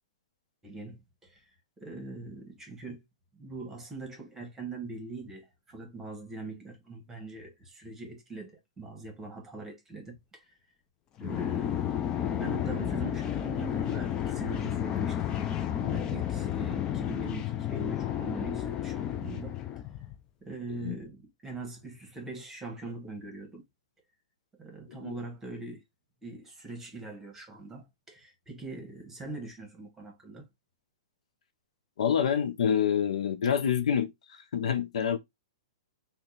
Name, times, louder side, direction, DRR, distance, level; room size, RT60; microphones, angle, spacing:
voice 1, 0.6-3.0 3.3-10.5 11.2-15.3 15.6-19.6 20.4-23.6 24.6-25.8 26.2-30.5, right 3 dB, 10° right, 1.1 m, -42 dB
sound 1, 11.2-20.2, left 10 dB, 25° left, 0.3 m, -32 dB
voice 2, 32.0-34.1 34.5-35.2, left 8 dB, 75° left, 0.6 m, -27 dB
2.8 x 2.2 x 3.8 m
hypercardioid pair, 145°, 4 cm